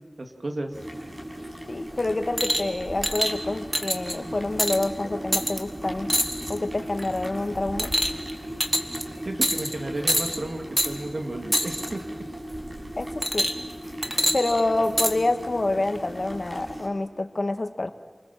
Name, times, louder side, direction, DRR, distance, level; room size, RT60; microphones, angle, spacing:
voice 1, 0.2-0.7 9.2-12.2, right 2 dB, 60° right, 4 dB, 2.5 m, -33 dB
sound 1, 0.7-16.9, equal, 35° right, 6.3 m, -37 dB
voice 2, 1.7-6.1 6.5-7.9 13.0-13.5 14.3-17.9, left 2 dB, 55° left, 8 dB, 1.5 m, -27 dB
sound 2, 2.4-2.7 3.0-3.3 3.7-4.2 4.6-4.8 5.3-5.6 6.1-6.6 7.0-7.3 7.8-8.3 8.6-9.0 9.4-9.7 10.1-10.4 10.8-10.9 11.5-11.9 13.2-13.7 14.0-15.1 16.0-16.1, equal, 10° right, 1.9 m, -25 dB
28.5 x 20.5 x 7.5 m, 1.3 s
wide cardioid pair, 50°, 0 cm